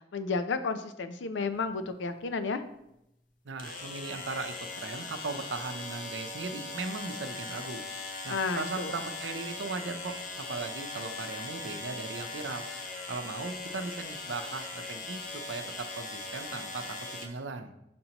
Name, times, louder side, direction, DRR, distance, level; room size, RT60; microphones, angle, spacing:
voice 1, 0.1-2.6 8.3-9.0, left 4 dB, 80° left, 9 dB, 0.5 m, -32 dB
sound 1, 1.5-1.6 3.6-17.3, left 3 dB, 45° left, 0.8 m, -40 dB
voice 2, 3.4-7.8 8.2-12.7 13.1-17.7, right 3 dB, 80° right, 7 dB, 0.6 m, -38 dB
6.7 x 5.3 x 2.9 m, 0.84 s
head